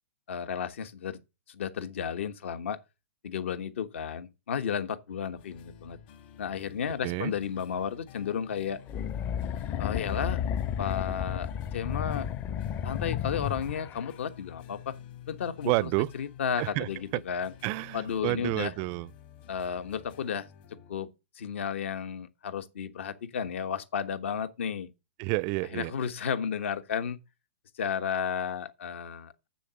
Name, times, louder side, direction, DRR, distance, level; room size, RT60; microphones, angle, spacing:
voice 1, 0.3-1.2 1.5-2.8 3.2-6.0 6.4-8.8 9.8-10.4 10.8-12.3 12.8-15.0 15.3-15.9 16.2-17.5 17.9-18.7 19.5-20.5 20.9-21.1 21.4-24.9 25.7-27.2 27.8-29.5, left 7 dB, 70° left, 1.3 m, -33 dB
sound 1, 5.4-20.9, left 11 dB, 50° left, 2.1 m, -50 dB
sound 2, 8.9-14.1, left 9 dB, 30° left, 0.6 m, -32 dB
voice 2, 15.6-16.1 16.6-17.2 17.6-19.1 25.2-25.9, right 24 dB, 40° right, 0.4 m, -29 dB
7.3 x 7.0 x 6.3 m
hypercardioid pair, 125°, 7 cm